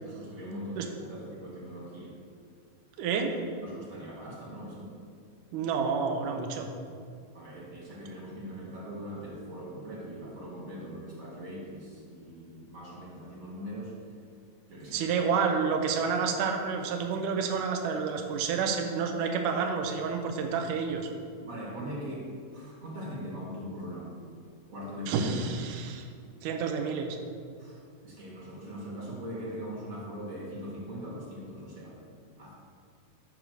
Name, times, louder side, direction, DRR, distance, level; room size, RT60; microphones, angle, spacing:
voice 1, 0.0-2.2 3.6-4.9 7.3-13.9 14.7-15.0 21.4-24.2 24.7-25.2 27.6-32.0 32.4-32.5, equal, 45° right, -4 dB, 1.0 m, -41 dB
voice 2, 3.0-3.4 5.5-6.7 14.9-21.1 25.1-26.1 26.4-27.2, right 5 dB, 75° right, 4 dB, 2.2 m, -29 dB
8.9 x 4.7 x 6.3 m, 2.3 s
omnidirectional pair, 3.9 m